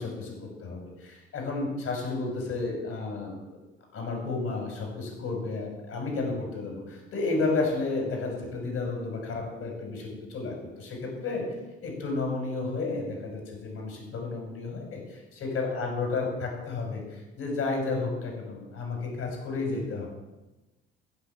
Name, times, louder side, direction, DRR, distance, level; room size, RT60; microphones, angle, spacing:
voice 1, 0.0-3.6 3.9-11.4 11.8-15.0 15.4-20.1, left 3 dB, 55° left, 0 dB, 5.5 m, -32 dB
15.0 x 6.3 x 7.1 m, 1.1 s
figure-of-eight pair, 50°, 29 cm